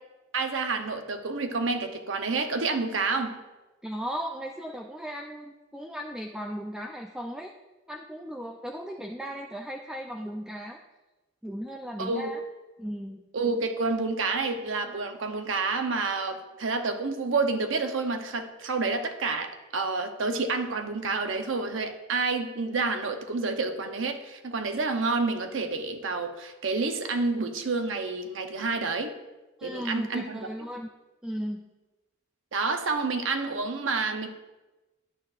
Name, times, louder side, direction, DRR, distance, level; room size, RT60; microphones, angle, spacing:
voice 1, 0.3-3.4 12.0-12.3 13.3-29.2 29.6-30.5 32.5-34.3, right 3 dB, 85° right, 6 dB, 0.8 m, -29 dB
voice 2, 3.8-7.5 7.9-10.8 11.4-12.4 12.8-13.2 29.6-30.9 31.2-31.7, equal, 5° right, 1 dB, 0.3 m, -36 dB
11.0 x 8.9 x 2.5 m, 1.1 s
head